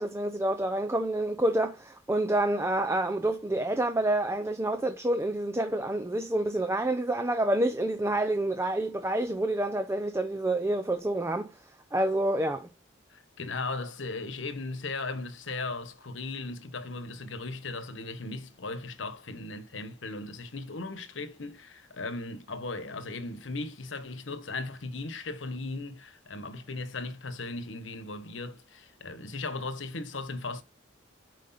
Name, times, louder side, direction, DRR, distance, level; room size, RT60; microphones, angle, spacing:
voice 1, 0.0-11.5 11.9-12.7, right 1 dB, 15° right, 0.6 m, -28 dB
voice 2, 13.1-30.6, left 3 dB, 80° left, 1.2 m, -37 dB
7.9 x 5.0 x 4.1 m
head